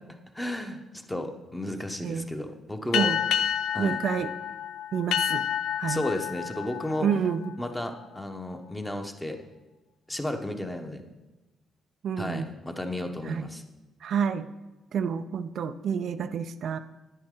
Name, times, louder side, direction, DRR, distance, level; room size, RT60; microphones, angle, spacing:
voice 1, 0.1-0.8 1.1-3.1 3.7-4.0 5.9-7.1 7.6-9.4 10.1-11.0 12.2-13.6, left 1 dB, 10° left, 5 dB, 1.1 m, -33 dB
sound 1, 2.9-8.0, left 9 dB, 85° left, 0.4 m, -30 dB
voice 2, 3.8-4.3 4.9-5.5 5.8-6.0 7.0-7.5 12.0-12.5 13.2-13.5 14.0-14.5 14.9-16.8, right 7 dB, 65° right, 10 dB, 0.4 m, -29 dB
9.9 x 9.7 x 3.8 m, 1.1 s
cardioid pair, 90°, 0 cm